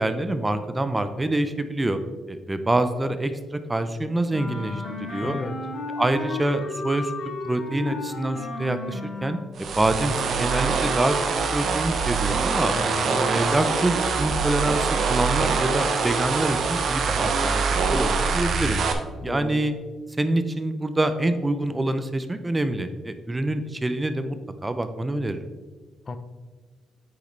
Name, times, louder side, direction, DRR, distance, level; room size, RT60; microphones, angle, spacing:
voice 1, 0.0-2.0 2.3-5.4 6.0-7.1 7.4-9.4 9.8-12.7 13.3-18.8 19.2-19.7 20.2-24.4 24.6-25.5, right 1 dB, 15° right, 10 dB, 0.6 m, -26 dB
Wind instrument woodwind instrument, 4.3-9.5, left 3 dB, 75° left, 2.1 m, -33 dB
voice 2, 5.2-5.5 12.7-13.4 19.2-19.6 26.1-26.2, left 3 dB, 35° left, 9 dB, 0.6 m, -33 dB
sound 1, 9.6-18.9, right 5 dB, 60° right, 0.9 m, -24 dB
8.5 x 6.3 x 3.3 m, 1.3 s
cardioid pair, 90°, 0 cm